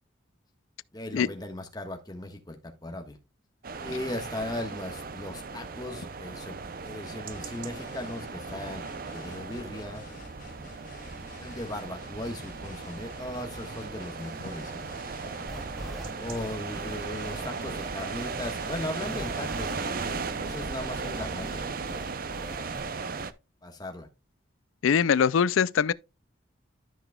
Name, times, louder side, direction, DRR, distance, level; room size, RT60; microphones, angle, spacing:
voice 1, 0.9-3.2 3.8-6.6 6.8-10.0 11.4-14.9 16.2-22.8 23.6-24.1, left 1 dB, 20° left, 1.3 m, -38 dB
sound 1, 3.6-23.3, right 4 dB, 45° right, 0.5 m, -37 dB
sound 2, 7.3-21.6, left 1 dB, 40° left, 2.7 m, -48 dB
sound 3, 15.5-22.8, equal, ahead, 0.6 m, -42 dB
voice 2, 24.8-25.9, left 7 dB, 80° left, 0.4 m, -22 dB
13.0 x 6.0 x 2.3 m
head